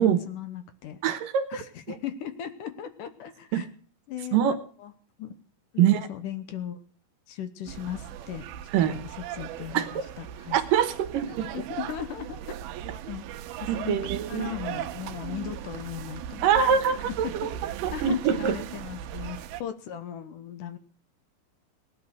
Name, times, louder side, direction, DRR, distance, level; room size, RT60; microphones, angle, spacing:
voice 1, 0.0-1.0 1.5-3.7 4.1-4.4 4.8-4.9 5.2-5.3 5.7-6.8 7.3-8.5 8.9-10.6 11.5-12.6 13.1-13.3 13.6-14.0 14.3-16.5 17.2-17.5 17.9-20.8, left 10 dB, 70° left, 12 dB, 2.3 m, -37 dB
voice 2, 1.0-1.4 3.5-3.6 4.3-4.6 5.8-6.1 8.7-8.9 9.7-9.9 10.5-11.5 13.7-14.5 16.4-17.5 17.8-18.6, right 8 dB, 70° right, 9 dB, 2.7 m, -24 dB
sound 1, 7.7-19.6, right 10 dB, 90° right, 2.8 m, -38 dB
18.0 x 11.5 x 6.5 m, 0.44 s
omnidirectional pair, 4.3 m